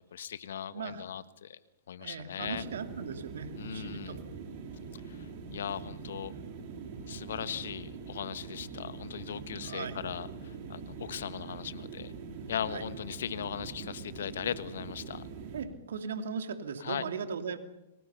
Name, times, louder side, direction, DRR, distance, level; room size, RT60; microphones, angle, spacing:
voice 1, 0.0-1.6 1.9-2.6 3.6-4.2 5.0-6.3 7.1-12.1 12.5-15.2 16.8-17.0, left 9 dB, 70° left, 15 dB, 1.3 m, -38 dB
voice 2, 0.7-1.1 2.0-4.2 9.7-10.0 12.7-12.8 15.5-17.6, right 6 dB, 70° right, 7 dB, 2.8 m, -38 dB
sound 1, 2.4-15.7, right 5 dB, 50° right, 4.6 m, -43 dB
29.0 x 24.0 x 5.7 m, 0.91 s
hypercardioid pair, 110°, 0 cm